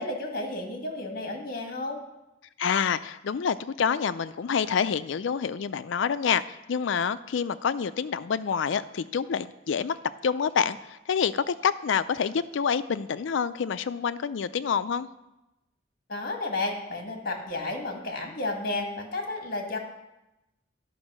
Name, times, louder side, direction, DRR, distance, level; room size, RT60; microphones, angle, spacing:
voice 1, 0.0-2.0 16.1-19.8, left 2 dB, 50° left, 3 dB, 1.6 m, -32 dB
voice 2, 2.6-10.0 10.2-15.1, left 6 dB, 70° left, 15 dB, 0.4 m, -27 dB
10.5 x 5.4 x 6.1 m, 0.96 s
head